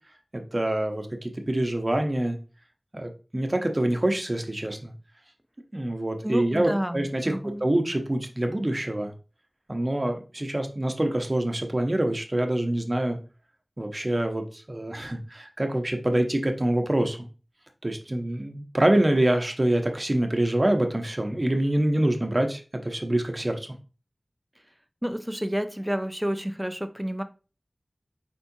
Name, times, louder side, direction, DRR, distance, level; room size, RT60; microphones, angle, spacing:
voice 1, 0.3-2.4 2.9-4.9 5.7-9.1 9.7-13.2 13.8-17.3 17.8-23.6, right 1 dB, 35° right, 5 dB, 0.8 m, -26 dB
voice 2, 6.2-7.7 25.0-27.2, equal, 5° right, 9 dB, 0.5 m, -30 dB
4.5 x 4.3 x 2.7 m, 0.34 s
wide cardioid pair, 50°, 0 cm